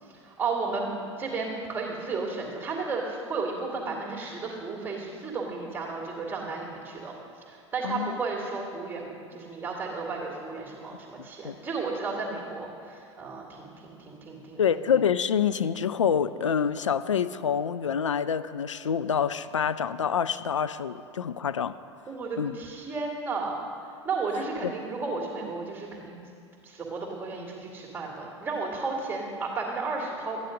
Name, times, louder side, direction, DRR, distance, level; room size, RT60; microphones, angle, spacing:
voice 1, 0.0-7.2 7.5-14.8 22.1-23.6 24.0-26.3 26.6-30.4, right 4 dB, 15° right, -2 dB, 2.3 m, -33 dB
voice 2, 7.8-8.2 11.4-11.6 14.6-21.8 22.4-22.5 24.6-24.7, left 7 dB, 75° left, 13 dB, 0.4 m, -26 dB
12.5 x 9.9 x 5.2 m, 2.5 s
figure-of-eight pair, 80°, 16 cm